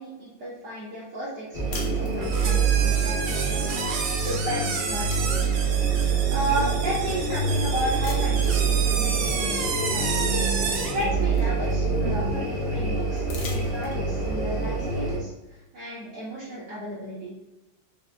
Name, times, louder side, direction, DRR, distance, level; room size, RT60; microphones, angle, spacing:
voice 1, 0.0-5.5 6.3-9.6 9.9-10.4 10.9-17.3, right 1 dB, 65° right, -9 dB, 1.2 m, -33 dB
sound 1, 1.5-15.2, right 5 dB, 40° right, 0.8 m, -25 dB
sound 2, 1.7-2.7 4.1-4.3 4.6-6.3 6.9-7.0 8.0-8.6 10.1-10.2 10.5-12.1 13.2-14.3, left 3 dB, 70° left, 1.1 m, -43 dB
sound 3, 2.2-11.0, right 5 dB, 80° right, 0.8 m, -31 dB
4.3 x 2.1 x 2.4 m, 1.0 s
omnidirectional pair, 2.2 m